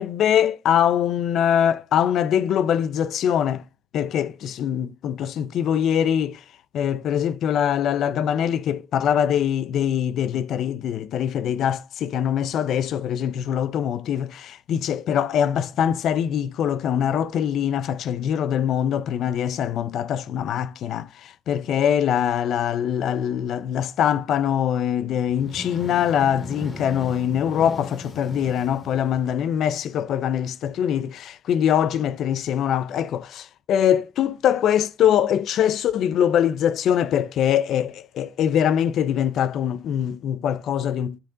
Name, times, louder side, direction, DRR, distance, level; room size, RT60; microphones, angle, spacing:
voice 1, 0.0-3.6 3.9-6.4 6.7-41.2, left 9 dB, 80° left, 0.4 m, -23 dB
sound 1, 25.2-29.7, left 1 dB, 45° left, 2.3 m, -39 dB
9.9 x 3.7 x 3.7 m
cardioid pair, 75°, 0 cm